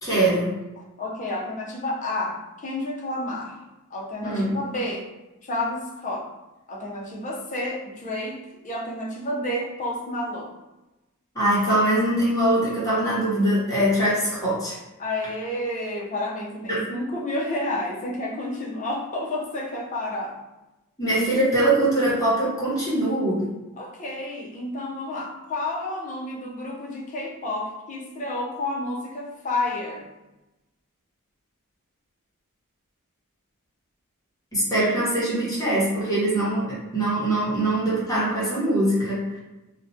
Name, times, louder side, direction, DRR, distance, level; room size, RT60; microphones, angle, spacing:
voice 1, 0.0-0.5 4.2-4.6 11.3-14.8 16.7-16.8 21.0-23.5 34.5-39.4, right 1 dB, 15° left, -9 dB, 0.9 m, -22 dB
voice 2, 1.0-3.6 3.9-5.1 5.4-6.3 6.7-10.5 15.0-20.4 23.8-30.1, left 1 dB, 35° left, -3 dB, 0.5 m, -30 dB
2.4 x 2.1 x 2.6 m, 1.0 s
head